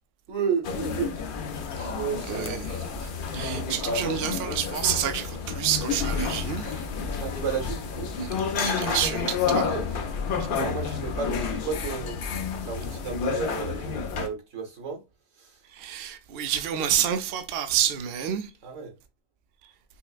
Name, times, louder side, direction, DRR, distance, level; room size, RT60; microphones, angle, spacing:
voice 1, 0.3-1.1 1.9-2.6 7.2-8.1 9.5-9.9 10.5-12.2 12.6-15.0 15.4-15.6 18.6-18.9, right 5 dB, 85° right, 1.5 m, -32 dB
sound 1, 0.6-14.3, left 5 dB, 55° left, 0.6 m, -30 dB
voice 2, 2.3-2.7 3.3-6.9 8.2-8.3 8.6-9.7 15.7-18.5, right 10 dB, 60° right, 0.7 m, -28 dB
5.6 x 2.1 x 2.4 m
omnidirectional pair, 1.2 m